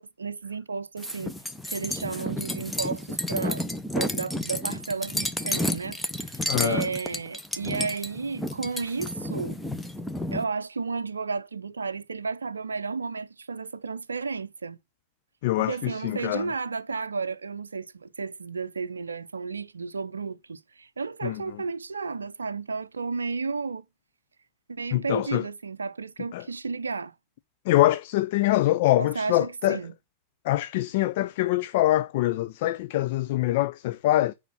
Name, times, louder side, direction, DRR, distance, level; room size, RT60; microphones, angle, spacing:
voice 1, 0.0-1.3 1.7-3.6 3.9-9.6 10.3-14.8 15.6-23.8 24.7-27.1 29.0-29.9, right 4 dB, 75° right, 0.5 m, -33 dB
sound 1, 1.0-10.4, left 1 dB, 5° left, 0.9 m, -31 dB
voice 2, 6.5-6.9 15.4-16.5 21.2-21.4 24.9-25.4 26.3-26.4 27.7-29.8 30.4-34.3, left 16 dB, 50° left, 0.4 m, -24 dB
9.1 x 4.9 x 5.5 m
figure-of-eight pair, 90°, 0 cm